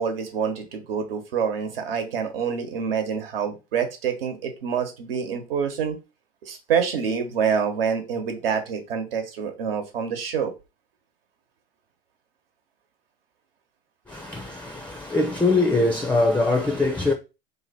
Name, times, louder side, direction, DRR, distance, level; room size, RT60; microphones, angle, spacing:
voice 1, 0.0-6.0 6.4-10.5, right 7 dB, 75° right, 1.1 m, -26 dB
voice 2, 14.1-17.1, left 2 dB, 5° left, 0.5 m, -22 dB
2.8 x 2.6 x 4.1 m
hypercardioid pair, 100°, 29 cm